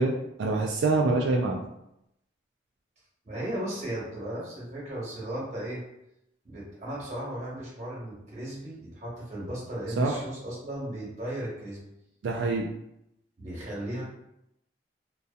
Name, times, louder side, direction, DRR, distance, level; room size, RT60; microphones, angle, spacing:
voice 1, 0.0-1.7 10.0-10.1 12.2-12.7, right 3 dB, 90° right, 0 dB, 0.3 m, -25 dB
voice 2, 3.2-5.8 6.4-11.8 13.4-14.0, right 1 dB, 40° right, -6 dB, 1.0 m, -36 dB
2.6 x 2.2 x 2.3 m, 0.82 s
head